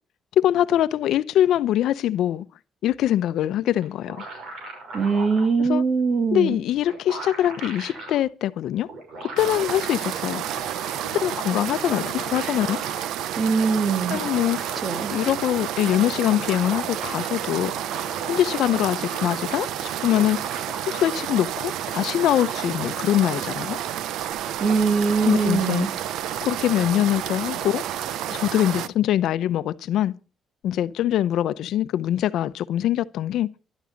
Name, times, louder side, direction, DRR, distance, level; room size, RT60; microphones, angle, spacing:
voice 1, 0.4-2.4 2.8-4.2 5.6-5.8 6.3-8.9 9.4-10.4 11.1-12.8 14.1-14.6 15.1-17.8 18.3-20.4 20.8-23.8 25.2-25.9 26.4-27.8 28.3-30.1 30.6-33.5, left 12 dB, 80° left, 0.7 m, -23 dB
sound 1, 3.8-5.5 6.5-6.6 6.8-8.2 8.9-9.7 10.2-11.2 11.9-13.1 14.0-15.4 15.7-15.8 16.0-17.2 17.6-19.8 20.1-21.1, right 2 dB, 70° right, 5.9 m, -39 dB
voice 2, 4.9-6.6 13.4-14.2 14.8-15.1 24.6-25.9, right 5 dB, 40° right, 2.3 m, -22 dB
sound 2, 9.4-28.9, right 11 dB, 85° right, 0.7 m, -30 dB
12.5 x 12.0 x 5.2 m
cardioid pair, 90°, 0 cm